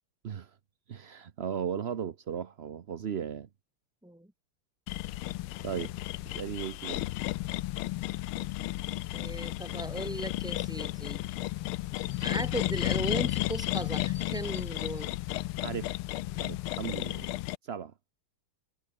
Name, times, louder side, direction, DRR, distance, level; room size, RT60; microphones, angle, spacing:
voice 1, 0.9-3.5 5.6-5.9 6.2-7.0 15.6-15.9 16.4-17.3 17.6-17.9, right 8 dB, 90° right, 0.5 m, -36 dB
sound 1, 4.9-17.6, left 17 dB, 85° left, 1.6 m, -33 dB
voice 2, 9.1-11.2 12.2-15.1, right 1 dB, ahead, 1.9 m, -37 dB
sound 2, 13.3-15.3, left 3 dB, 60° left, 7.1 m, -54 dB
omnidirectional pair, 2.3 m